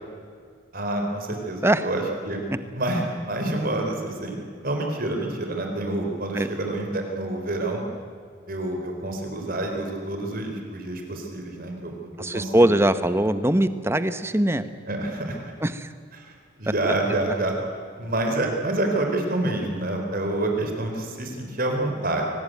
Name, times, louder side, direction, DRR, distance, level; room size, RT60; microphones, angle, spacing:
voice 1, 0.7-2.4 2.7-4.4 4.6-7.8 8.5-12.7 14.9-15.4 16.2-16.3 16.6-17.5 18.0-22.2, right 2 dB, 45° right, 3 dB, 4.1 m, -27 dB
voice 2, 12.2-14.6 15.6-15.9, right 1 dB, 10° right, 11 dB, 0.9 m, -21 dB
24.0 x 19.0 x 9.2 m, 2.1 s
head